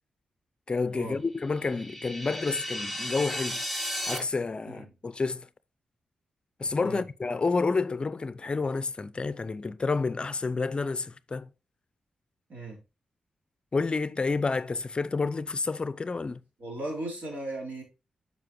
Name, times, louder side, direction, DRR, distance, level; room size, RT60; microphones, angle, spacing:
voice 1, 0.7-3.6 4.1-5.5 6.6-11.5 13.7-16.4, left 4 dB, 40° left, 0.5 m, -29 dB
sound 1, 1.4-4.2, equal, 5° right, 4.6 m, -34 dB
voice 2, 16.6-17.8, right 1 dB, 65° right, 3.4 m, -37 dB
7.5 x 5.4 x 3.0 m
supercardioid pair, 45°, 3 cm